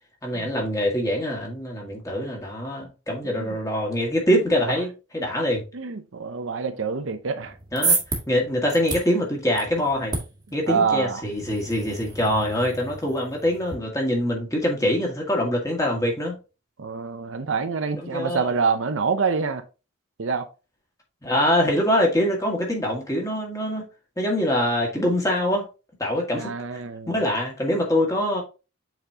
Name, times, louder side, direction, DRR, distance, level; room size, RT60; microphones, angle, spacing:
voice 1, 0.2-5.6 7.7-8.0 8.3-10.2 10.5-16.4 18.0-18.5 21.2-23.8 24.2-25.7 26.0-26.5 27.1-28.4, equal, 15° left, 1.9 m, -24 dB
voice 2, 5.7-7.5 10.7-11.2 16.8-19.6 20.2-20.5 26.4-27.2, right 5 dB, 70° right, 0.6 m, -26 dB
sound 1, 7.4-13.7, right 4 dB, 20° right, 1.6 m, -31 dB
8.0 x 4.4 x 2.8 m
head